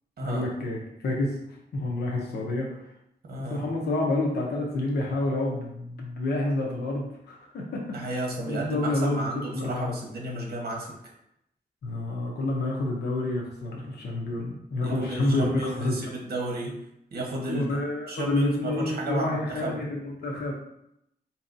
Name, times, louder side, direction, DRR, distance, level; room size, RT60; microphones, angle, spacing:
voice 1, 0.2-1.4 1.7-2.7 3.4-9.3 9.5-9.9 11.8-15.9 17.5-20.5, left 2 dB, 85° left, -1 dB, 0.7 m, -29 dB
voice 2, 3.3-3.6 7.9-10.9 14.8-16.7 17.1-17.8 18.1-19.8, right 2 dB, 75° right, -1 dB, 1.0 m, -32 dB
4.5 x 2.8 x 2.6 m, 0.79 s
wide cardioid pair, 120°, 16 cm